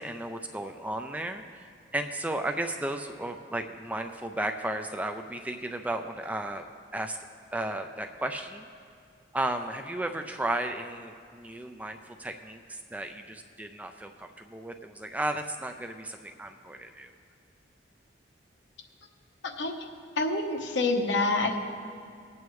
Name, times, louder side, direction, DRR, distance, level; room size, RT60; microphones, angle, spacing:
voice 1, 0.0-6.7 6.9-7.2 7.5-8.7 9.3-17.1, right 1 dB, 10° right, 5 dB, 0.3 m, -34 dB
voice 2, 19.4-19.8 20.2-21.6, left 2 dB, 75° left, 3 dB, 1.1 m, -27 dB
19.0 x 8.5 x 3.2 m, 2.3 s
head